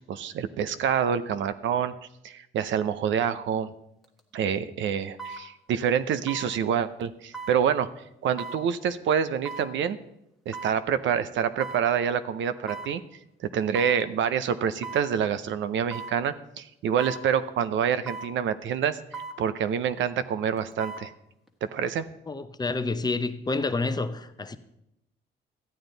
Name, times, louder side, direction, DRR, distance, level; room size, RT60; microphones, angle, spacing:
voice 1, 0.1-1.9 2.2-3.7 4.3-7.9 8.2-10.0 10.5-13.0 13.4-21.1 21.7-22.1, right 8 dB, 70° right, 0.6 m, -27 dB
sound 1, 4.0-4.2 5.2-5.4 6.3-6.5 7.3-7.6 8.4-8.6 9.5-9.7 10.5-10.8 11.6-11.9 12.7-12.9 13.7-14.0 14.8-15.1 15.9-16.2 17.0-17.2 18.1-18.3 19.1-19.4 20.6-21.1 21.5-21.6, right 3 dB, ahead, 1.4 m, -37 dB
voice 2, 22.3-24.6, left 3 dB, 20° left, 0.7 m, -29 dB
13.0 x 8.8 x 3.9 m
cardioid pair, 90°, 20 cm